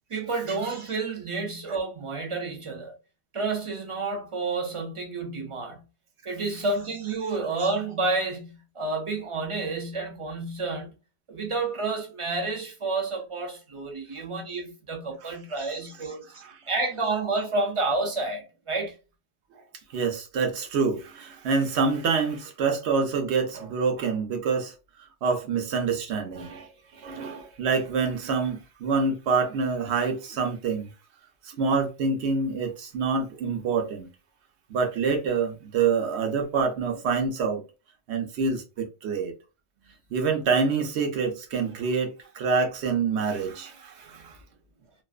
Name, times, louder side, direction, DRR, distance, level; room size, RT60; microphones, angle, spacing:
voice 1, 0.1-2.9 3.3-5.8 6.3-10.9 11.3-18.9, right 3 dB, 55° right, 0.3 m, -30 dB
voice 2, 19.9-26.7 26.9-30.9 31.4-34.1 34.7-37.6 38.1-39.3 40.1-44.4, right 5 dB, 80° right, 0.9 m, -26 dB
2.5 x 2.2 x 2.3 m
omnidirectional pair, 1.1 m